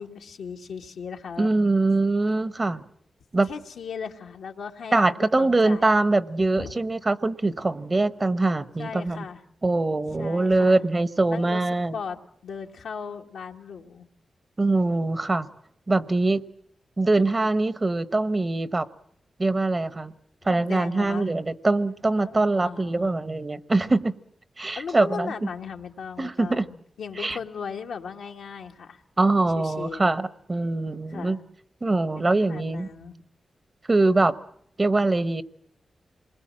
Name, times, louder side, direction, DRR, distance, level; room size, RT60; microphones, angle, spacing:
voice 1, 0.0-1.5 3.4-5.9 6.6-6.8 8.8-9.4 10.1-10.8 11.3-11.6 11.9-14.1 20.5-21.3 22.2-22.4 22.6-23.1 24.8-29.0 29.5-30.2 31.1-31.4 32.1-33.2, left 6 dB, 90° left, 2 dB, 1.6 m, -37 dB
voice 2, 1.4-2.8 3.3-3.5 4.9-9.3 9.6-11.9 14.6-15.5 15.9-16.4 17.0-18.9 19.4-20.1 20.4-24.1 24.6-25.5 26.2-26.6 27.2-27.4 29.2-31.4 31.8-32.9 33.9-34.3 34.8-35.4, right 2 dB, 35° right, 15 dB, 1.0 m, -23 dB
27.5 x 21.0 x 7.5 m, 0.67 s
cardioid pair, 60°, 0 cm